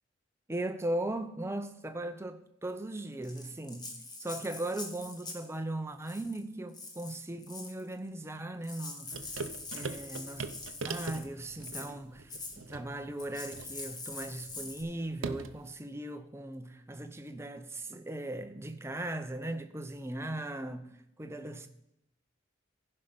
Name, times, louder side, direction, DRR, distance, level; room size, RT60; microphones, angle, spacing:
voice 1, 0.5-3.9 4.2-9.2 9.7-10.5 10.8-21.7, right 1 dB, 15° right, 0.7 m, -38 dB
Rattle (instrument), 3.2-5.5 6.0-6.4 6.7-7.8 8.3-8.4 8.6-11.3 11.6-11.9 12.3-12.6 13.2-14.8, left 3 dB, 20° left, 1.3 m, -44 dB
sound 1, 9.1-15.7, right 4 dB, 80° right, 0.7 m, -42 dB
15.0 x 5.4 x 5.3 m
head